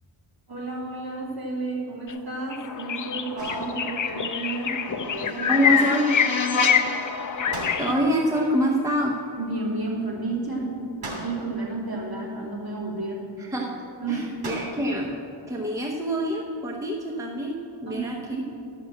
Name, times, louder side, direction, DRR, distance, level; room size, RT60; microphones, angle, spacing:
voice 1, 0.5-4.8 5.0-5.7 6.4-6.5 9.4-13.2 14.0-14.3 17.9-18.4, right 2 dB, 45° right, -5 dB, 3.1 m, -31 dB
sound 1, 2.1-2.2 2.5-7.9, left 7 dB, 40° left, 0.5 m, -26 dB
sound 2, 3.4-4.2 7.5-8.3 11.0-11.8 14.4-15.1, right 1 dB, 80° right, 2.7 m, -37 dB
sound 3, 4.3-9.3, left 4 dB, 65° left, 1.1 m, -32 dB
voice 2, 5.5-6.1 7.8-9.2 13.4-13.8 14.1-15.2 15.5-18.2, equal, 5° right, -1 dB, 0.9 m, -25 dB
11.5 x 5.9 x 7.7 m, 2.8 s
wide cardioid pair, 120°, 49 cm